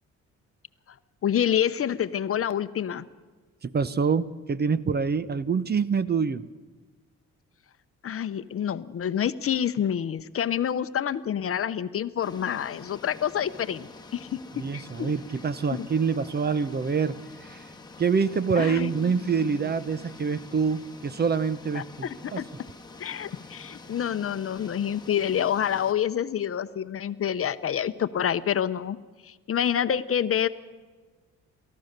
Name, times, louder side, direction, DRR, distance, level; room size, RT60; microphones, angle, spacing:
voice 1, 1.2-3.0 8.0-14.4 14.7-15.1 15.7-15.9 18.6-19.1 21.7-22.4 23.0-29.0 29.2-30.5, left 9 dB, 45° left, 13 dB, 0.8 m, -27 dB
voice 2, 3.6-6.4 14.6-17.7 18.0-22.4, right 5 dB, 30° right, 16 dB, 0.7 m, -26 dB
sound 1, 12.2-25.9, left 3 dB, 15° left, 1.4 m, -47 dB
29.0 x 14.0 x 6.7 m, 1.4 s
cardioid pair, 105°, 31 cm